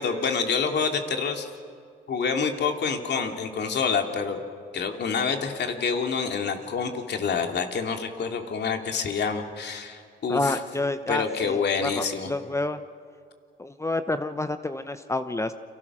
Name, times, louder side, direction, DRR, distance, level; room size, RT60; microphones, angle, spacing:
voice 1, 0.0-1.5 2.1-4.4 4.7-10.6 11.1-12.3, left 5 dB, 60° left, 4 dB, 2.8 m, -27 dB
voice 2, 10.3-12.8 13.6-15.5, left 2 dB, 15° left, 10 dB, 0.9 m, -29 dB
29.5 x 24.5 x 6.2 m, 2.2 s
cardioid pair, 90°, 20 cm